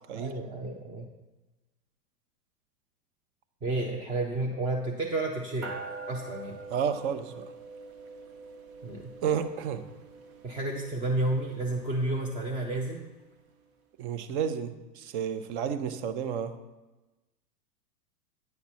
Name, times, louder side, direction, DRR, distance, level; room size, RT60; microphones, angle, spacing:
voice 1, 0.1-1.1 3.6-5.7 6.1-6.6 8.8-9.1 10.4-13.0, right 2 dB, 10° right, 0 dB, 0.4 m, -31 dB
sound 1, 5.6-13.3, right 3 dB, 60° right, 1.3 m, -45 dB
voice 2, 6.7-7.4 9.2-9.8 14.0-16.6, right 8 dB, 45° right, 11 dB, 0.8 m, -31 dB
9.5 x 5.8 x 4.3 m, 1.1 s
hypercardioid pair, 110°, 48 cm